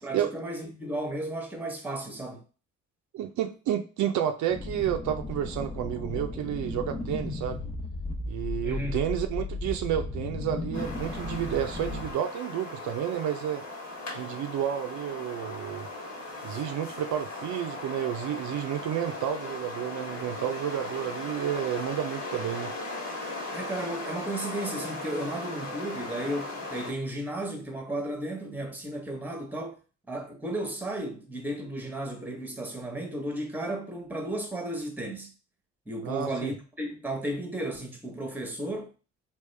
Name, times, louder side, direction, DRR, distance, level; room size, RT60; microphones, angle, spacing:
voice 1, 0.0-2.4 8.6-9.0 23.5-29.8 30.1-35.3 35.9-38.9, right 1 dB, 5° right, 0.9 m, -34 dB
voice 2, 3.1-7.6 8.3-13.6 14.1-15.9 16.4-22.7 36.0-36.5, right 10 dB, 75° right, 0.5 m, -31 dB
sound 1, 4.5-12.1, left 2 dB, 20° left, 0.6 m, -35 dB
sound 2, 10.7-26.9, left 2 dB, 65° left, 1.4 m, -38 dB
3.6 x 2.4 x 3.2 m
cardioid pair, 90°, 30 cm